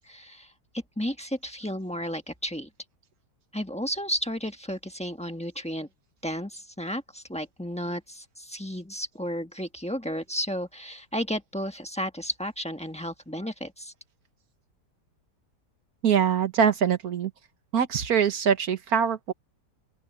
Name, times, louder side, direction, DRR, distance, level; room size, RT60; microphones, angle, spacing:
voice 1, 0.0-0.5 1.0-2.7 3.5-5.9 6.2-13.9, equal, 5° left, 1.2 m, -33 dB
voice 2, 16.0-17.3 17.7-19.3, right 7 dB, 60° right, 1.7 m, -23 dB
open air
omnidirectional pair, 1.8 m